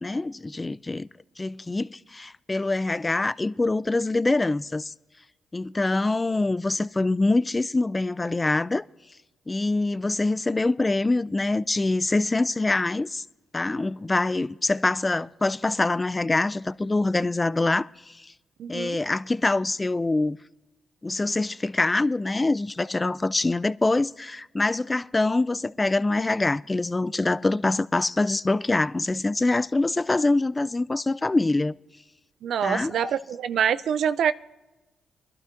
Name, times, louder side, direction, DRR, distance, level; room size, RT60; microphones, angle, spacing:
voice 1, 0.0-1.1 1.4-4.9 5.5-8.8 9.5-13.2 13.5-18.3 18.7-20.4 21.0-31.8 32.6-33.1, left 2 dB, 25° left, 0.3 m, -25 dB
voice 2, 18.6-19.0 32.4-34.3, right 8 dB, 75° right, 0.3 m, -25 dB
23.5 x 12.0 x 2.5 m
supercardioid pair, 60°, 0 cm